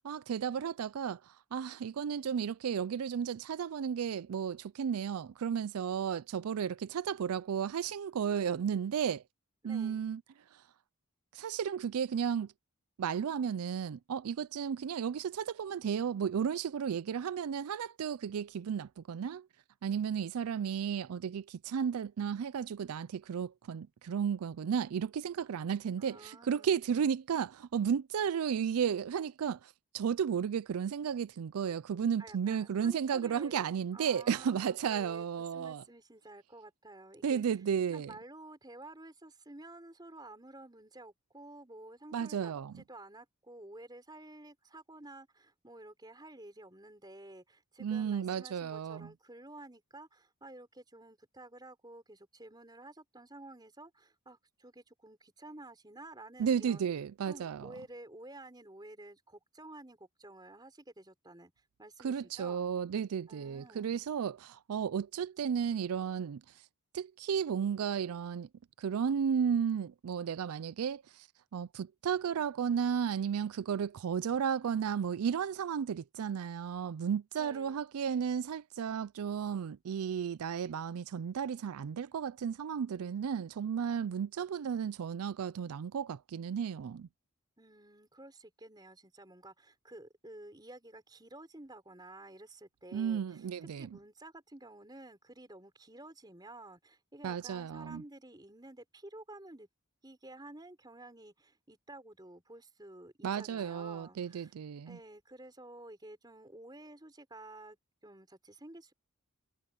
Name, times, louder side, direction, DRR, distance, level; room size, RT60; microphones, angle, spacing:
voice 1, 0.0-9.2 9.6-10.2 10.5-10.6 11.3-12.5 13.0-19.5 19.8-35.8 37.2-38.1 42.1-42.7 47.8-49.1 56.4-57.7 62.0-66.4 66.9-68.5 68.8-71.3 71.5-87.1 92.9-93.9 97.2-98.0 103.2-105.0, right 7 dB, 85° right, 0.4 m, -33 dB
voice 2, 9.6-10.1 26.0-26.7 32.2-33.7 33.9-37.4 37.9-56.8 57.2-61.5 61.8-62.7 63.3-64.0 77.4-77.9 87.6-93.5 93.7-99.7 100.0-104.5 104.9-107.8 108.0-108.9, right 2 dB, 20° right, 4.2 m, -52 dB
head